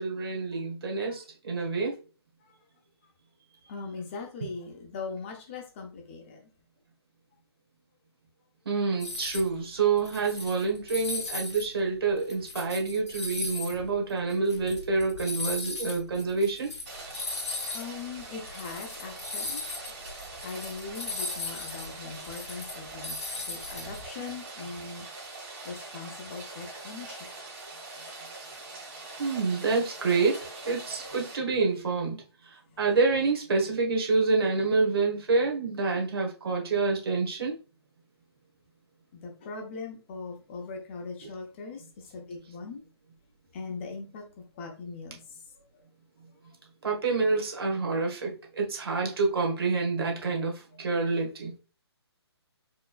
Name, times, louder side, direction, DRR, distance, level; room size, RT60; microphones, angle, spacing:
voice 1, 0.0-1.9 8.6-16.7 29.2-32.2 32.8-37.5 46.8-51.5, right 4 dB, 60° right, 1.4 m, -27 dB
voice 2, 3.7-6.4 17.7-19.6 20.4-23.1 23.5-25.1 25.7-27.2 39.2-41.8 42.1-42.8 43.5-44.2 44.6-45.2, left 4 dB, 25° left, 0.8 m, -40 dB
sound 1, 9.0-9.5 9.9-11.7 12.1-17.9 18.2-18.3 18.5-24.0, left 3 dB, 85° left, 1.2 m, -37 dB
Rain, 16.9-31.4, right 2 dB, 30° right, 2.2 m, -43 dB
4.5 x 3.0 x 2.4 m
hypercardioid pair, 155°, 14 cm